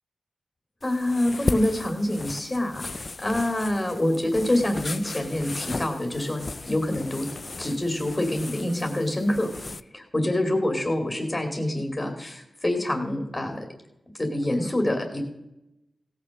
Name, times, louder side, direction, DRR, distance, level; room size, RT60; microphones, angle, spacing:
sound 1, 0.8-9.8, left 3 dB, 40° left, 0.5 m, -36 dB
voice 1, 0.8-2.9 3.2-7.3 7.6-9.5 9.9-13.6 14.1-15.2, left 1 dB, 20° left, 4 dB, 2.5 m, -26 dB
16.5 x 6.7 x 6.4 m, 0.87 s
wide cardioid pair, 85°, 0 cm